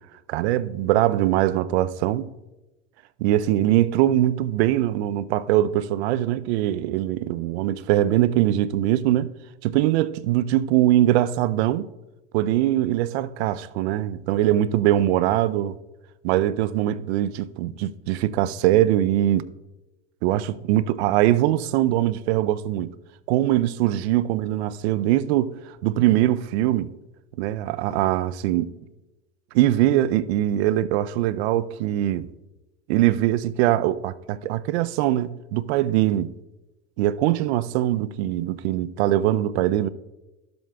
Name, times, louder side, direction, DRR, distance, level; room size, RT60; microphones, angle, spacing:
voice 1, 0.3-2.3 3.2-9.3 9.6-11.9 12.3-15.8 16.2-19.5 20.2-22.9 23.3-26.9 27.4-28.7 29.5-32.3 32.9-36.3 37.0-39.9, right 13 dB, 65° right, 0.5 m, -22 dB
12.0 x 7.7 x 2.3 m
hypercardioid pair, 105°, 35 cm